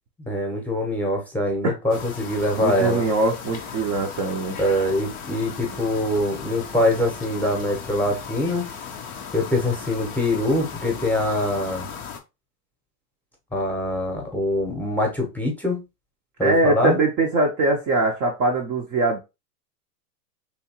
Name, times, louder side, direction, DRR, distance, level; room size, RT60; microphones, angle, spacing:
voice 1, 0.3-3.0 4.6-8.7 9.3-11.9 13.5-15.8 16.4-17.0, left 1 dB, 5° left, 0.8 m, -24 dB
sound 1, 1.9-12.2, left 7 dB, 20° left, 0.4 m, -37 dB
voice 2, 2.6-4.6 16.4-19.2, right 2 dB, 30° right, 0.6 m, -22 dB
3.3 x 2.9 x 2.8 m
hypercardioid pair, 110°, 47 cm